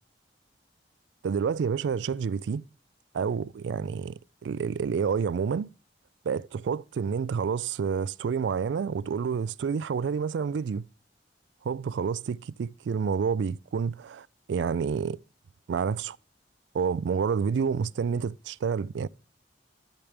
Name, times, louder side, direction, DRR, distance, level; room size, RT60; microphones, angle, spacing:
voice 1, 1.2-2.6 3.1-5.7 6.3-10.8 11.6-15.2 15.7-16.2 16.7-19.1, right 6 dB, 80° right, 0.3 m, -29 dB
12.0 x 7.1 x 3.4 m
head